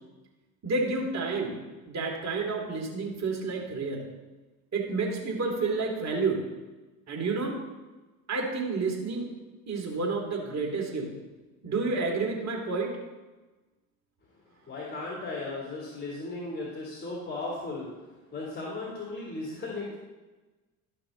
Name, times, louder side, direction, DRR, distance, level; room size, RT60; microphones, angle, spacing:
voice 1, 0.6-1.6 1.8-4.0 4.7-6.4 7.1-7.6 8.3-9.3 9.7-11.1 11.6-12.9, right 3 dB, 40° right, 0 dB, 2.8 m, -30 dB
voice 2, 14.6-17.9 18.3-20.0, left 2 dB, 20° left, -4 dB, 3.2 m, -36 dB
12.5 x 5.8 x 3.9 m, 1.2 s
hypercardioid pair, 75°, 43 cm